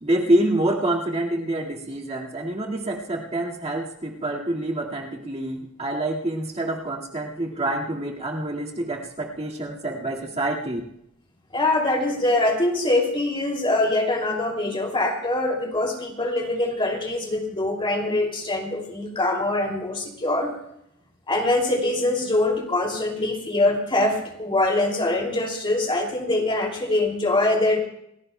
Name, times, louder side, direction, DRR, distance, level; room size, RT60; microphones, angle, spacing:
voice 1, 0.0-10.8, right 1 dB, 30° right, -2 dB, 2.0 m, -26 dB
voice 2, 11.5-20.5 21.3-27.8, left 2 dB, 25° left, 1 dB, 2.7 m, -23 dB
29.5 x 16.5 x 2.2 m, 0.76 s
head